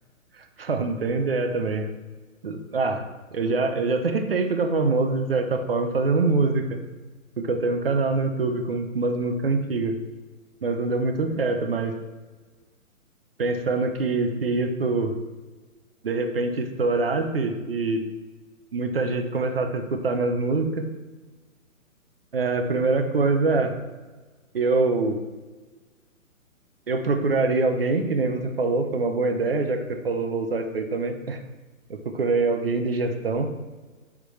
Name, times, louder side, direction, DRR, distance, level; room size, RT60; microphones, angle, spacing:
voice 1, 0.4-1.9 2.4-3.0 3.3-6.8 7.4-10.0 10.6-12.0 13.4-15.1 16.0-18.0 18.7-20.9 22.3-23.7 24.5-25.2 26.9-31.4 31.9-33.5, right 3 dB, 45° right, 6 dB, 0.7 m, -24 dB
10.0 x 3.7 x 3.2 m, 1.3 s
hypercardioid pair, 175°, 42 cm